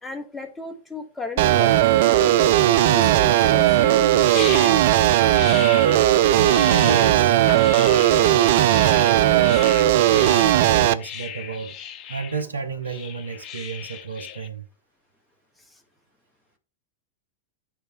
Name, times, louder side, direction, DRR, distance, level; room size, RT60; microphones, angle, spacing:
voice 1, 0.0-2.6 2.9-4.9 15.7-15.8, left 2 dB, 10° left, 1.5 m, -35 dB
sound 1, 1.4-10.9, right 12 dB, 55° right, 0.4 m, -17 dB
sound 2, 3.5-14.5, left 9 dB, 40° left, 0.8 m, -37 dB
voice 2, 6.4-9.6 10.1-11.8 12.1-14.6, right 5 dB, 75° right, 1.0 m, -31 dB
9.1 x 3.2 x 4.3 m
figure-of-eight pair, 90°, 0 cm